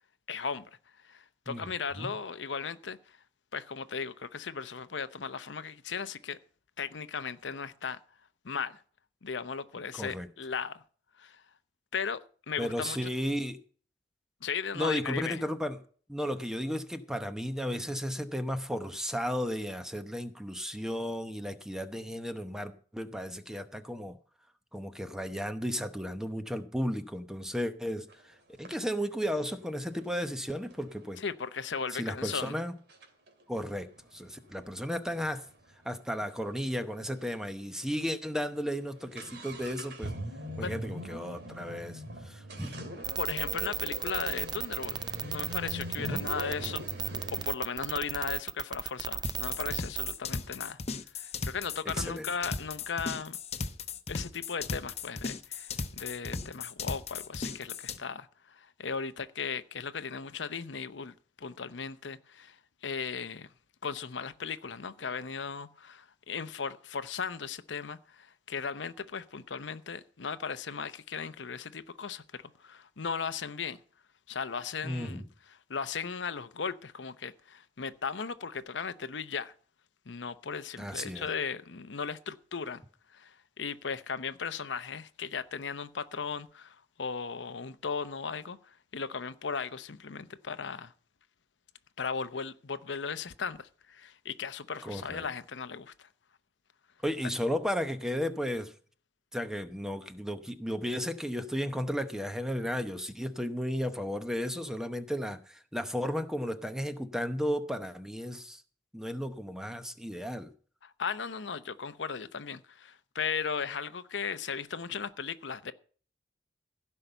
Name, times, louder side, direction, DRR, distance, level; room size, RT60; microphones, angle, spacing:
voice 1, 0.3-0.6 1.0-3.0 3.5-6.4 6.8-8.0 8.4-8.8 9.2-10.8 11.2-11.4 11.9-12.2 12.5-13.1 14.4-15.4 31.2-32.5 40.6-40.8 43.2-50.8 51.1-53.4 54.1-62.6 62.8-63.5 63.8-73.8 74.3-79.5 80.1-82.8 83.1-90.9 92.0-96.1 110.8-115.7, left 6 dB, 90° left, 0.8 m, -37 dB
voice 2, 9.9-10.3 12.6-13.6 14.7-15.8 16.1-24.2 24.7-31.2 31.9-32.7 33.5-33.9 34.1-35.4 35.8-40.1 40.6-42.8 46.0-46.2 51.9-52.3 74.8-75.3 80.8-81.3 94.8-95.3 97.0-98.7 99.3-108.6 108.9-110.5, equal, 5° right, 0.9 m, -34 dB
sound 1, 28.1-28.2 28.6-31.3 31.9-32.0 32.3-32.5 32.9-36.6 36.9-37.0 37.1-37.2 37.9-38.0 38.3-47.5, right 1 dB, 65° right, 2.6 m, -42 dB
sound 2, 43.0-50.2, right 7 dB, 25° right, 0.5 m, -34 dB
sound 3, 49.2-58.0, left 4 dB, 35° left, 0.8 m, -36 dB
15.5 x 5.6 x 8.0 m
head